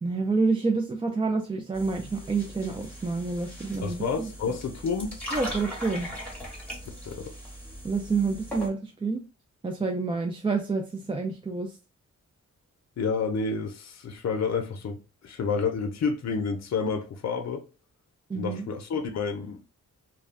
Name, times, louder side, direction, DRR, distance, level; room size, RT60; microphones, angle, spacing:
voice 1, 0.0-4.0 5.3-6.1 7.8-9.2 9.6-11.7 18.3-18.7, right 4 dB, 20° right, 0.4 m, -28 dB
sound 1, 1.7-8.7, equal, 5° left, 1.0 m, -39 dB
voice 2, 3.8-5.2 7.1-7.3 13.0-17.6 18.3-19.6, left 5 dB, 60° left, 0.6 m, -29 dB
2.3 x 2.1 x 3.5 m
cardioid pair, 90°, 30 cm